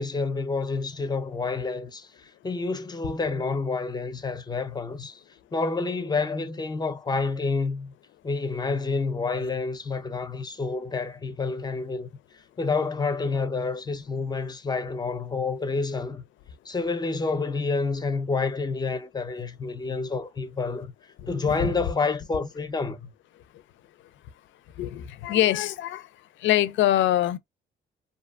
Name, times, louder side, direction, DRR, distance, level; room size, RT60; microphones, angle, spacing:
voice 1, 0.0-5.2 5.5-7.9 8.2-12.1 12.6-16.2 16.6-20.9 21.3-23.1, left 4 dB, 20° left, 0.6 m, -28 dB
voice 2, 21.2-21.5 24.8-26.1 26.4-27.4, left 13 dB, 75° left, 0.4 m, -24 dB
2.6 x 2.2 x 2.5 m
cardioid pair, 90°, 20 cm